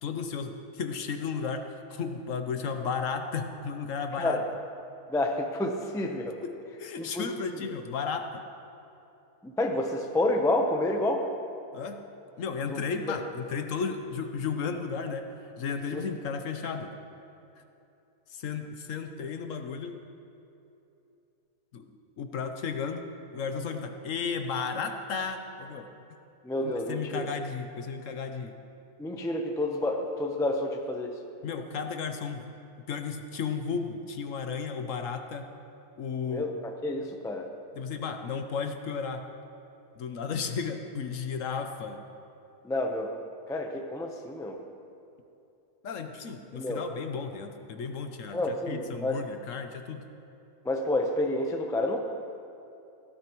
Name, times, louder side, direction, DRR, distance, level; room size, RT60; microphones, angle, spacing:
voice 1, 0.0-4.4 6.4-8.4 11.7-12.0 12.4-15.3 15.6-16.9 18.3-20.0 21.7-25.9 26.6-28.6 31.4-32.5 32.9-35.5 36.0-36.4 37.7-39.3 39.9-42.0 45.8-50.0, left 5 dB, 60° left, 6 dB, 1.0 m, -34 dB
voice 2, 5.1-6.4 7.1-7.6 9.4-11.3 12.7-12.8 13.1-13.2 15.9-16.0 26.4-27.3 29.0-31.1 36.3-37.5 42.6-43.1 43.5-44.6 46.5-46.8 48.3-49.2 50.6-52.0, left 1 dB, 5° left, 3 dB, 0.3 m, -29 dB
17.5 x 12.5 x 3.0 m, 2.8 s
omnidirectional pair, 1.6 m